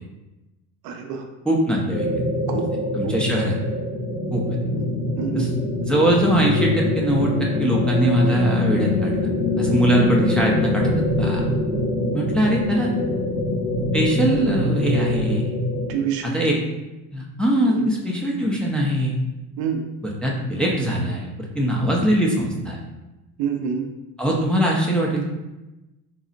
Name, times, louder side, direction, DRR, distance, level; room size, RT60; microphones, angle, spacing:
voice 1, 0.8-1.2 2.5-2.7 3.0-3.4 4.7-4.9 5.2-5.5 15.9-16.6 17.7-17.9 19.6-19.8 23.4-23.8, right 7 dB, 60° right, 4 dB, 0.5 m, -27 dB
voice 2, 1.5-2.1 2.5-2.6 2.9-3.6 4.3-4.4 5.3-5.5 5.7-9.1 9.6-10.9 11.2-11.4 12.1-12.9 13.9-15.5 16.2-16.6 17.1-19.1 20.0-22.8 24.2-25.3, right 1 dB, ahead, -3 dB, 0.5 m, -21 dB
sound 1, 1.9-15.9, left 2 dB, 75° left, 0.8 m, -24 dB
3.7 x 2.0 x 2.5 m, 1.0 s
supercardioid pair, 90°, 40 cm